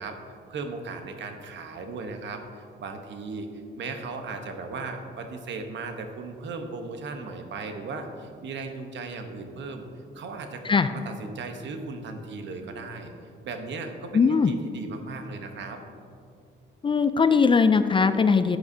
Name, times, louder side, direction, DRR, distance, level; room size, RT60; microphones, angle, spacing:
voice 1, 0.0-3.5 3.8-9.8 10.1-13.1 13.4-15.8, right 3 dB, 65° right, 5 dB, 1.0 m, -37 dB
voice 2, 14.1-14.5 16.8-18.6, left 5 dB, 25° left, 11 dB, 0.3 m, -20 dB
11.0 x 8.1 x 2.7 m, 2.4 s
cardioid pair, 90°, 20 cm